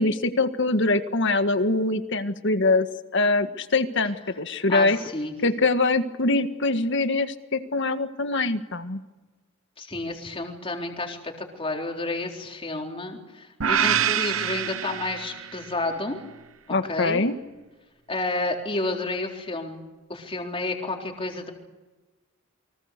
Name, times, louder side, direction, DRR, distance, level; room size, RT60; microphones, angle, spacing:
voice 1, 0.0-2.9 3.1-5.0 5.4-9.0 16.7-17.4, left 3 dB, 65° left, 9 dB, 1.7 m, -23 dB
voice 2, 4.7-5.3 9.8-16.2 16.9-17.2 18.1-19.8 20.1-21.5, left 2 dB, 30° left, 1 dB, 3.9 m, -30 dB
sound 1, 13.6-15.8, right 8 dB, 80° right, 1.0 m, -25 dB
29.5 x 24.5 x 6.8 m, 1.2 s
head